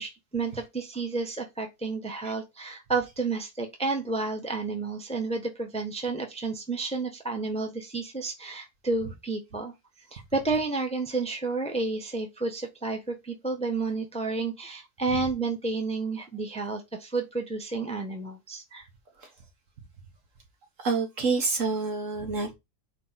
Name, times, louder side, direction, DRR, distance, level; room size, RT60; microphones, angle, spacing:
voice 1, 0.0-9.7 10.1-18.9, right 3 dB, 5° left, 1.0 m, -31 dB
voice 2, 20.8-22.6, right 4 dB, 55° right, 1.7 m, -27 dB
4.5 x 4.5 x 5.8 m
omnidirectional pair, 1.7 m